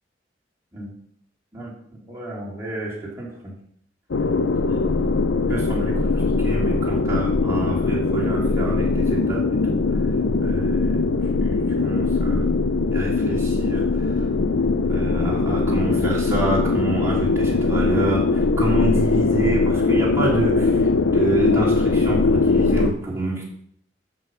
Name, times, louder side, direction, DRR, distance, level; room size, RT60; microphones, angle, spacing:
voice 1, 2.1-3.3 4.7-5.1 5.5-9.8 10.4-11.0 11.4-12.4 12.9-14.2 14.9-23.4, right 2 dB, 15° right, -5 dB, 3.2 m, -27 dB
sound 1, 4.1-22.9, left 3 dB, 75° left, 0.6 m, -21 dB
12.0 x 5.5 x 5.7 m, 0.68 s
head